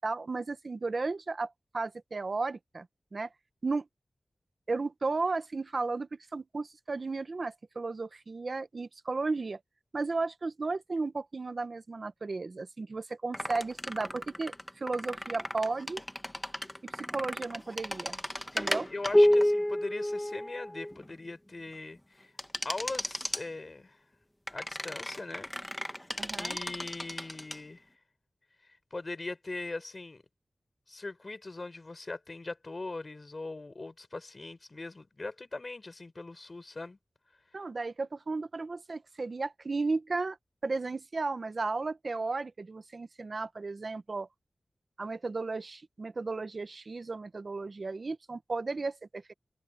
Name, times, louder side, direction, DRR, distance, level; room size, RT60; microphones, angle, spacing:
voice 1, 0.0-2.9 3.1-3.3 3.6-3.9 4.7-9.6 9.9-16.0 16.9-18.2 18.5-18.9 26.2-26.6 37.5-40.4 40.6-44.3 45.0-49.3, right 3 dB, 50° right, 1.0 m, -34 dB
sound 1, 13.3-21.1 22.4-23.4 24.5-27.6, left 1 dB, 10° left, 1.3 m, -31 dB
voice 2, 18.5-22.3 22.6-24.0 24.5-25.9 26.3-27.8 28.7-30.2 30.9-37.0, left 3 dB, 40° left, 4.2 m, -41 dB
wide cardioid pair, 100°, 0 cm